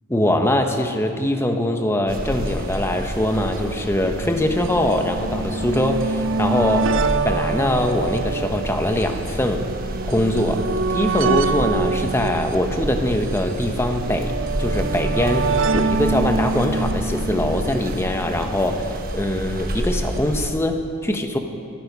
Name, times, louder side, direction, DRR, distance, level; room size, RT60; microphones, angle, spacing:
voice 1, 0.1-6.9 7.2-9.6 10.0-10.6 10.9-14.3 14.6-21.4, left 1 dB, 10° left, 4 dB, 1.1 m, -22 dB
sound 1, 2.1-20.5, right 1 dB, 40° right, 1.2 m, -30 dB
sound 2, 2.5-2.6 2.7-2.8 3.7-18.9 19.9-20.0 20.2-20.3, right 4 dB, 60° right, 0.5 m, -26 dB
24.0 x 9.7 x 5.5 m, 2.3 s
head